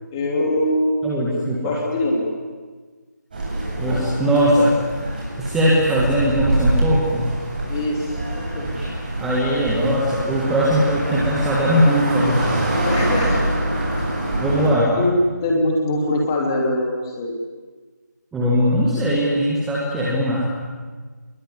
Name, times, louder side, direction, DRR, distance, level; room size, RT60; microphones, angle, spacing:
voice 1, 0.1-1.0 1.6-2.3 7.7-8.7 12.8-13.4 15.0-15.1 15.4-17.3, left 1 dB, 15° left, 0 dB, 3.1 m, -22 dB
voice 2, 1.0-1.7 3.8-4.7 5.4-7.3 8.7-8.9 9.2-12.4 14.4-14.9 18.3-20.5, equal, 5° right, -6 dB, 1.8 m, -20 dB
sound 1, 3.3-14.7, right 1 dB, 30° right, 7.8 m, -25 dB
25.5 x 22.0 x 9.9 m, 1.4 s
figure-of-eight pair, 170°, 10 cm